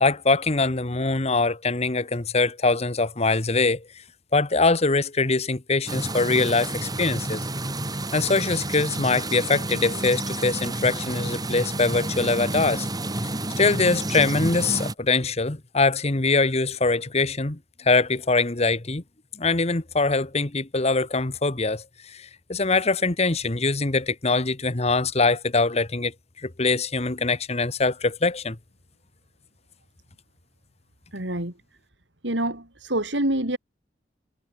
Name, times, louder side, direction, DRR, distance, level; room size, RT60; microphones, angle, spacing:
voice 1, 0.0-3.9 4.3-7.4 8.1-12.9 13.6-19.0 19.3-28.6, left 3 dB, 35° left, 1.4 m, -23 dB
sound 1, 5.9-14.9, right 1 dB, 20° right, 3.5 m, -30 dB
voice 2, 31.1-31.5 32.2-33.6, right 1 dB, 80° right, 5.4 m, -26 dB
head